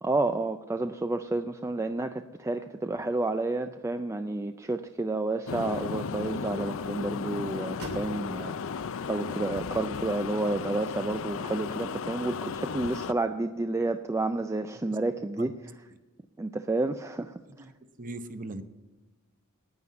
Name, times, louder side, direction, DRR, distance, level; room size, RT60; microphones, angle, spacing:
voice 1, 0.0-15.5 16.4-17.3, right 2 dB, 15° right, 8 dB, 0.3 m, -30 dB
sound 1, 4.2-10.4, equal, 70° right, 2.7 m, -50 dB
sound 2, 5.5-13.1, left 5 dB, 60° left, 0.5 m, -35 dB
voice 2, 18.0-18.6, right 2 dB, 40° right, 10 dB, 0.8 m, -39 dB
9.6 x 9.4 x 8.3 m, 1.2 s
head